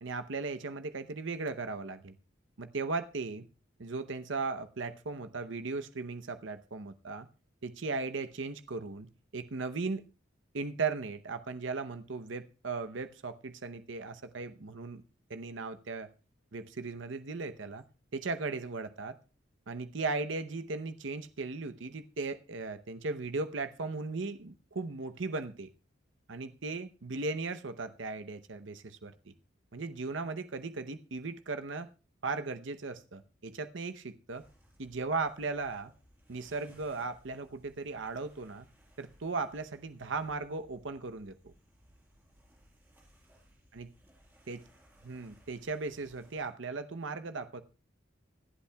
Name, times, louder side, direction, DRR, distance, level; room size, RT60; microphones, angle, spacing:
voice 1, 0.0-2.2 2.6-3.5 3.8-7.3 7.6-10.0 10.5-15.0 15.3-16.1 16.5-17.8 18.1-19.2 19.7-25.7 26.3-29.1 29.7-31.9 32.2-34.4 34.8-35.9 36.3-38.7 39.0-41.5 43.7-43.9 44.5-44.6 45.0-47.6, right 3 dB, 70° right, 0.8 m, -37 dB
sound 1, 34.3-46.5, equal, 10° right, 5.3 m, -63 dB
25.5 x 8.5 x 2.3 m
head